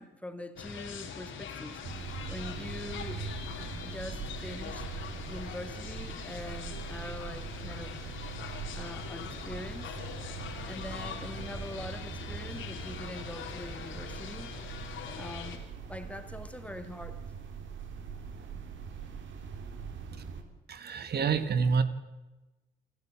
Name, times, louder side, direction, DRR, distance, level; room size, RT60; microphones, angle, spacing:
voice 1, 0.0-1.8 2.3-3.3 3.8-4.9 5.3-8.0 8.8-10.0 10.7-14.5 15.2-17.2, left 1 dB, 5° left, 9 dB, 2.2 m, -43 dB
sound 1, 0.6-15.6, left 6 dB, 80° left, 3.7 m, -42 dB
sound 2, 1.8-20.4, right 6 dB, 75° right, 3.2 m, -42 dB
voice 2, 20.7-21.8, right 5 dB, 55° right, 12 dB, 1.8 m, -27 dB
27.5 x 12.0 x 8.9 m, 1.1 s
cardioid pair, 90°, 20 cm